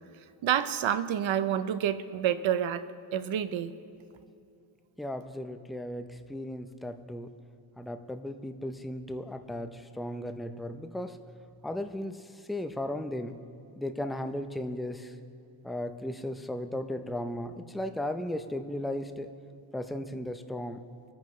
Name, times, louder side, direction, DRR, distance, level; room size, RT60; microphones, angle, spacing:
voice 1, 0.4-2.9 3.1-3.7, right 10 dB, 80° right, 12 dB, 0.8 m, -28 dB
voice 2, 5.0-7.3 7.8-11.2 11.6-13.3 13.8-15.2 15.6-19.3 19.7-20.8, left 1 dB, ahead, 7 dB, 0.6 m, -36 dB
25.5 x 9.2 x 3.2 m, 2.5 s
cardioid pair, 80°, 46 cm